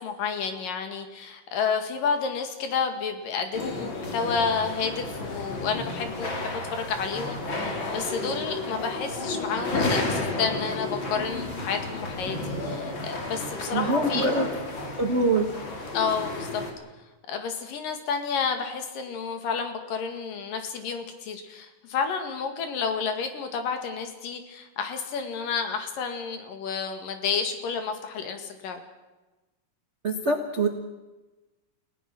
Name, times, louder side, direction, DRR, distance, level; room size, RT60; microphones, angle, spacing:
voice 1, 0.0-14.3 15.9-16.6 17.3-28.8, left 5 dB, 80° left, 6 dB, 3.7 m, -30 dB
sound 1, 3.5-16.7, left 2 dB, 35° left, 3.2 m, -32 dB
voice 2, 13.7-14.5 14.9-15.5 30.0-30.7, right 2 dB, 50° right, 3 dB, 0.8 m, -24 dB
30.0 x 17.0 x 6.1 m, 1.1 s
omnidirectional pair, 3.9 m